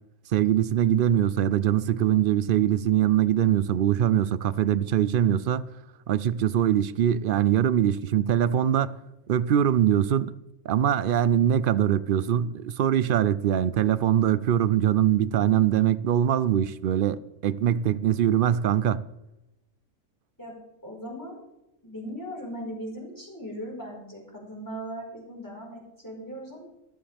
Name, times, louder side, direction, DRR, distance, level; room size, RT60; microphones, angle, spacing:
voice 1, 0.3-5.6 6.1-8.9 9.3-10.3 10.6-19.0, right 10 dB, 65° right, 0.5 m, -23 dB
voice 2, 20.8-21.4 21.8-26.7, equal, 15° left, 4.9 m, -38 dB
15.0 x 13.5 x 3.5 m
omnidirectional pair, 1.4 m